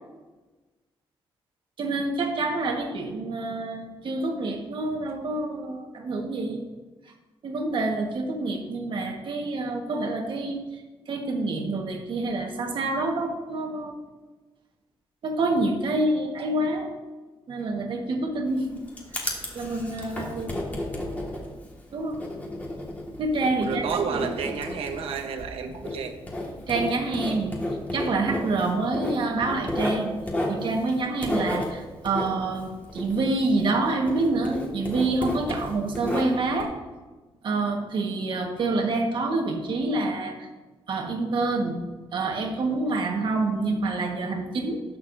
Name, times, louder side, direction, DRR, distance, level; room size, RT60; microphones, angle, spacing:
voice 1, 1.8-6.6 7.4-13.9 15.2-16.9 17.5-18.8 19.1-20.5 21.9-22.2 23.2-24.3 26.7-27.6 27.9-30.1 30.5-36.8 37.4-40.5 40.9-41.8 42.1-44.8, right 2 dB, 55° right, 2 dB, 1.5 m, -27 dB
Writing, 18.5-33.8 34.1-36.6, left 1 dB, 15° left, 1.8 m, -33 dB
voice 2, 23.6-26.1, right 6 dB, 80° right, 6 dB, 1.1 m, -30 dB
19.0 x 6.7 x 2.7 m, 1.2 s
wide cardioid pair, 145°, 10 cm